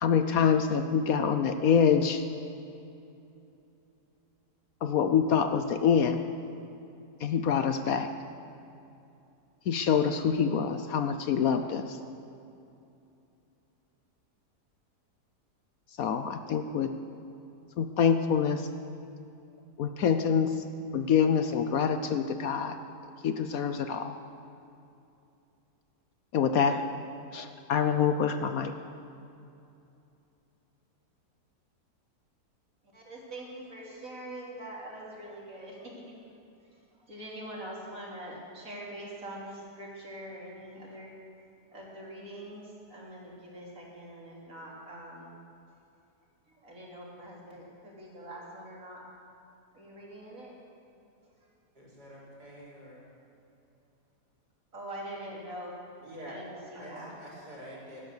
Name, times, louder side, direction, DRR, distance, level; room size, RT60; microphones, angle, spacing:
voice 1, 0.0-2.2 4.8-6.2 7.2-8.1 9.7-12.0 16.0-16.9 17.8-18.6 19.8-20.5 20.9-22.7 23.2-24.2 26.3-26.8 27.3-28.7, left 7 dB, 65° left, 8 dB, 1.0 m, -26 dB
voice 2, 32.9-35.9 37.1-41.1 41.7-42.6 42.9-45.3 46.6-49.0 49.7-50.5 54.7-55.8 56.3-57.1, right 1 dB, 50° right, -4 dB, 3.6 m, -43 dB
voice 3, 51.7-53.0 56.0-56.4 56.7-58.1, equal, 70° right, -5 dB, 4.8 m, -46 dB
17.0 x 12.0 x 6.6 m, 2.7 s
omnidirectional pair, 1.8 m